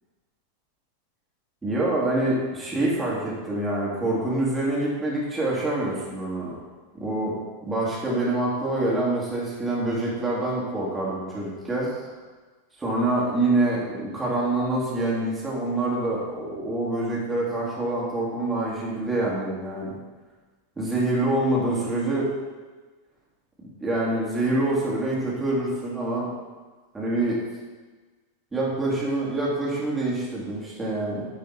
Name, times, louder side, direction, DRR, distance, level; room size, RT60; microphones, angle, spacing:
voice 1, 1.6-6.5 7.0-7.4 7.6-12.1 12.8-19.9 20.8-22.3 23.6-26.3 26.9-27.4 28.5-31.3, right 2 dB, 10° right, -6 dB, 2.9 m, -26 dB
10.5 x 5.6 x 4.4 m, 1.3 s
figure-of-eight pair, 90°, 0 cm